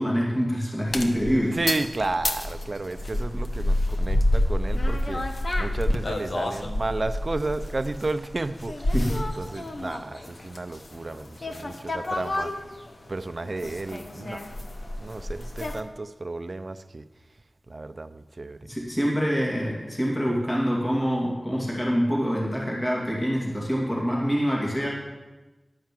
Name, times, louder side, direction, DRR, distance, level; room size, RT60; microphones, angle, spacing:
voice 1, 0.0-1.6 8.9-9.2 18.6-24.9, equal, 25° left, -4 dB, 2.3 m, -25 dB
sound 1, 0.9-15.8, left 1 dB, 60° left, 0.9 m, -29 dB
voice 2, 1.5-5.2 5.6-8.9 9.4-12.5 13.1-14.5 15.0-17.0 17.7-18.6, right 2 dB, 50° right, 11 dB, 0.5 m, -32 dB
11.5 x 5.8 x 7.5 m, 1.1 s
wide cardioid pair, 80°, 0 cm